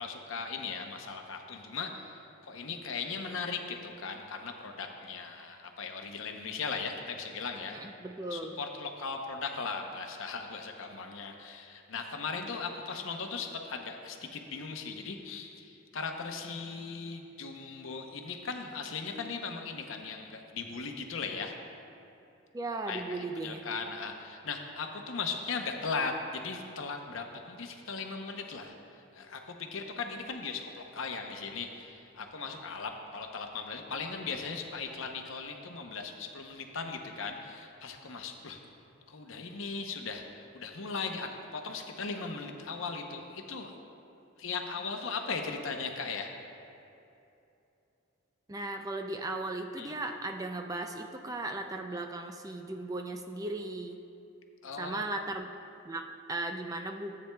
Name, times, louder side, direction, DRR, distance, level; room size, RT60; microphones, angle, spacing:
voice 1, 0.0-7.9 8.3-21.5 22.9-28.8 29.1-38.6 39.1-43.7 44.4-46.3 49.8-49.9 54.6-55.1, left 4 dB, 75° left, 4 dB, 0.7 m, -38 dB
voice 2, 7.7-8.6 22.5-23.7 48.5-54.0 54.8-55.6 55.9-57.2, right 2 dB, 15° right, 5 dB, 0.3 m, -37 dB
13.5 x 8.5 x 2.3 m, 2.7 s
head